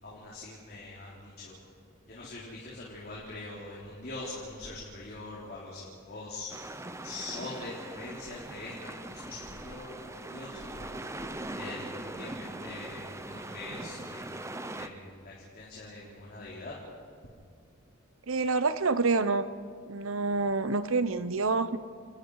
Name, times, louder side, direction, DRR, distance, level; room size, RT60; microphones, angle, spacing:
voice 1, 0.0-1.5 2.1-6.5 7.0-14.3 14.7-16.7, left 2 dB, 50° left, -5 dB, 3.7 m, -43 dB
sound 1, 6.5-14.9, right 1 dB, 15° right, 0.9 m, -41 dB
voice 2, 18.3-19.5 19.9-21.8, right 3 dB, 75° right, 13 dB, 0.9 m, -27 dB
30.0 x 20.0 x 4.9 m, 2.1 s
head